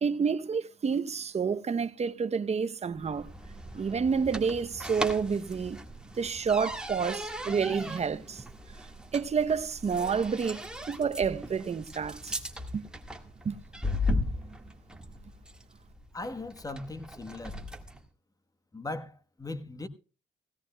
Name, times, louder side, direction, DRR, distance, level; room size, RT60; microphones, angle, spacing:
voice 1, 0.0-3.3 3.7-5.8 6.2-8.4 9.1-12.4 12.7-12.9 13.4-13.6, right 6 dB, 35° right, 0.7 m, -29 dB
sound 1, 3.0-18.0, left 1 dB, 5° right, 1.6 m, -37 dB
voice 2, 16.1-17.6 18.7-19.9, left 2 dB, 20° left, 1.1 m, -39 dB
17.0 x 16.5 x 2.2 m
cardioid pair, 90°, 20 cm